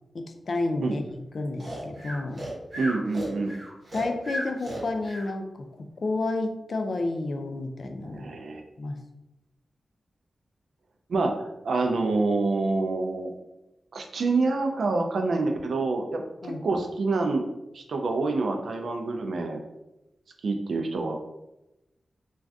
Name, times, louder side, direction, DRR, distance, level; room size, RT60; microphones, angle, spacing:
voice 1, 0.1-1.0 1.3-2.4 3.9-5.7 6.0-8.3 8.8-9.0 16.4-16.6, left 2 dB, 50° left, 5 dB, 0.3 m, -30 dB
Breathing, 1.6-5.3, equal, 40° right, 0.9 m, -35 dB
voice 2, 2.8-3.6 8.1-8.6 11.1-13.3 13.9-17.5 17.7-19.6 20.4-21.2, right 3 dB, 70° right, 4 dB, 0.4 m, -27 dB
2.5 x 2.3 x 3.3 m, 0.94 s
wide cardioid pair, 170°, 0 cm